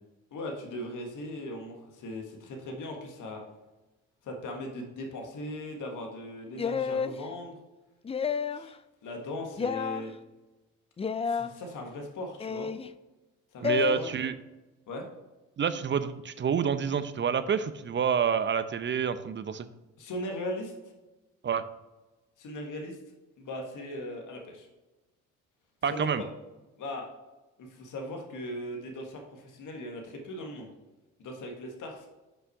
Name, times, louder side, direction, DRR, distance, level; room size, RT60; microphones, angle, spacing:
voice 1, 0.3-3.4 4.2-7.6 8.2-8.7 9.0-10.1 11.3-12.7 13.5-14.1 14.9-15.1 20.0-20.7 22.4-23.0 23.4-24.7 25.9-26.3 26.8-27.1 27.6-30.7 31.2-32.1, left 1 dB, 60° left, 2 dB, 1.6 m, -39 dB
sound 1, 6.6-7.2 8.1-8.7 9.6-10.0 11.0-11.5 12.4-12.9 13.6-14.0, left 6 dB, 20° left, 0.4 m, -30 dB
voice 2, 13.6-14.3 15.6-19.7 21.4-21.6 25.8-26.2, right 7 dB, 30° right, 12 dB, 0.7 m, -28 dB
6.2 x 5.5 x 4.6 m, 1.1 s
supercardioid pair, 60°, 35 cm